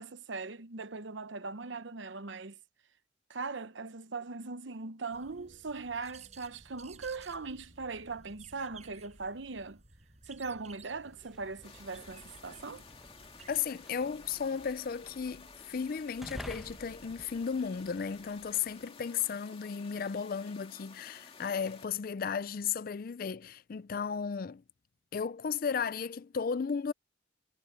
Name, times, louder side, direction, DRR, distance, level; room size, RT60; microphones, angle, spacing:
voice 1, 0.0-2.6 3.3-9.8 10.2-12.8, right 4 dB, 75° right, 0.9 m, -40 dB
sound 1, 5.1-13.7, right 4 dB, 35° right, 6.8 m, -56 dB
sound 2, 11.1-18.9, equal, ahead, 1.1 m, -52 dB
sound 3, 11.6-21.9, left 5 dB, 30° left, 2.5 m, -54 dB
voice 2, 13.5-24.6 25.1-26.9, left 6 dB, 50° left, 0.4 m, -34 dB
head